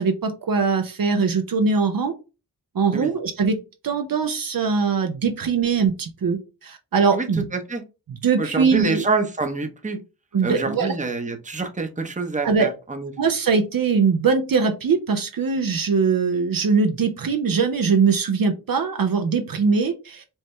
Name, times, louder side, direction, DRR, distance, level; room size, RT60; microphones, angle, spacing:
voice 1, 0.0-2.1 2.7-3.6 3.8-7.5 8.1-9.0 10.3-10.9 12.4-12.7 13.2-20.2, right 5 dB, 60° right, 6 dB, 0.7 m, -21 dB
voice 2, 7.5-7.8 8.4-10.0 10.4-13.1, right 3 dB, 20° right, 6 dB, 0.8 m, -26 dB
4.6 x 2.1 x 3.1 m, 0.30 s
cardioid pair, 50°, 38 cm